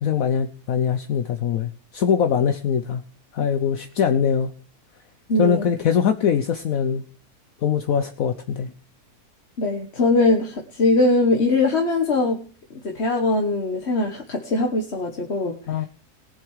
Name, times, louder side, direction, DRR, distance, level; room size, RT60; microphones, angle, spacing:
voice 1, 0.0-3.0 3.3-4.5 5.4-7.0 7.6-8.7 15.7-15.9, left 7 dB, 65° left, 8 dB, 1.1 m, -22 dB
voice 2, 5.3-5.7 9.6-12.4 12.7-15.9, left 2 dB, 45° left, 2 dB, 1.5 m, -21 dB
19.5 x 7.4 x 4.8 m, 0.39 s
omnidirectional pair, 1.7 m